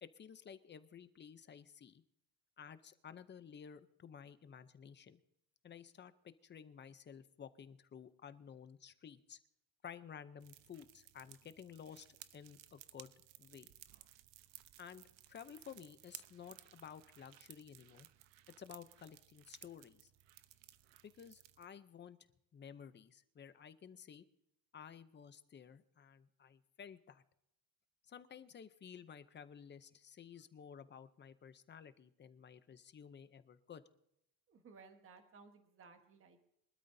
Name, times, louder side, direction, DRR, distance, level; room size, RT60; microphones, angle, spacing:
voice 1, 0.0-2.0 2.6-5.2 5.6-6.1 6.4-9.4 9.8-12.1 12.3-13.1 13.4-13.7 14.8-18.1 18.6-20.1 21.0-22.2 22.5-24.3 24.7-27.2 28.1-33.8, left 7 dB, 25° left, 12 dB, 0.6 m, -54 dB
sound 1, 10.4-21.7, right 14 dB, 90° right, 0.9 m, -59 dB
voice 2, 34.5-36.4, right 4 dB, 30° right, 6 dB, 1.2 m, -59 dB
23.5 x 12.5 x 2.7 m, 0.78 s
cardioid pair, 175°, 43 cm